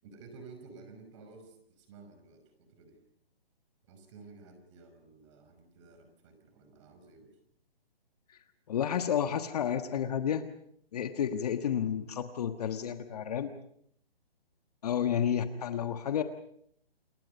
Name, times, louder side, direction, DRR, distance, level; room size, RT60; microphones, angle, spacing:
voice 1, 0.0-3.0 3.8-7.4 11.8-12.2, right 4 dB, 30° right, 7 dB, 5.5 m, -53 dB
voice 2, 8.7-10.5 10.9-13.5 14.8-16.2, left 9 dB, 40° left, 9 dB, 1.4 m, -31 dB
29.0 x 21.0 x 5.5 m, 0.66 s
hypercardioid pair, 160°, 30 cm